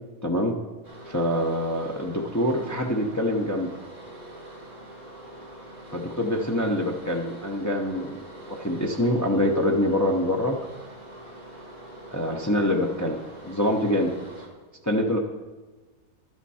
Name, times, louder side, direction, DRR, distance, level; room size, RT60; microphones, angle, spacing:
voice 1, 0.2-0.6 1.1-3.7 5.9-8.1 8.5-10.6 12.1-14.1 14.8-15.2, left 1 dB, 20° left, 1 dB, 0.5 m, -25 dB
sound 1, 0.8-14.5, right 1 dB, 30° right, 2.7 m, -44 dB
12.0 x 8.1 x 4.3 m, 1.3 s
omnidirectional pair, 1.6 m